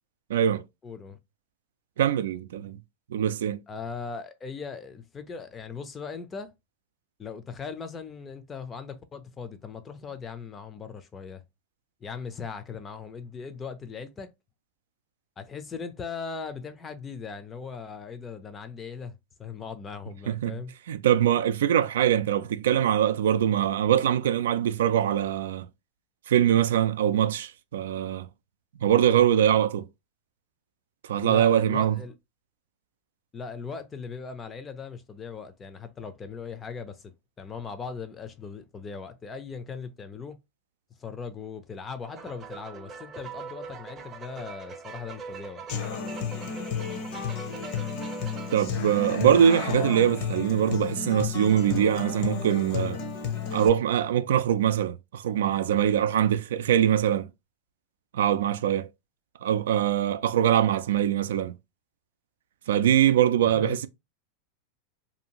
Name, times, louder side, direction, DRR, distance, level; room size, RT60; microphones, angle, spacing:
voice 1, 0.3-0.6 2.0-2.8 3.1-3.6 20.3-20.6 20.9-25.7 26.3-28.3 28.8-29.9 31.0-32.0 48.5-53.0 53.5-57.3 58.1-58.9 59.4-61.5 62.7-63.9, right 10 dB, 80° right, 0.3 m, -23 dB
voice 2, 0.8-1.2 3.7-6.5 7.2-11.4 12.0-14.3 15.4-20.7 31.2-32.1 33.3-37.0 37.4-40.4 41.0-45.8 63.5-63.8, left 5 dB, 20° left, 0.5 m, -39 dB
sound 1, 42.0-48.6, right 5 dB, 25° right, 0.6 m, -42 dB
Human voice / Acoustic guitar, 45.7-53.7, left 6 dB, 55° left, 0.8 m, -32 dB
2.7 x 2.5 x 2.8 m
hypercardioid pair, 125°, 0 cm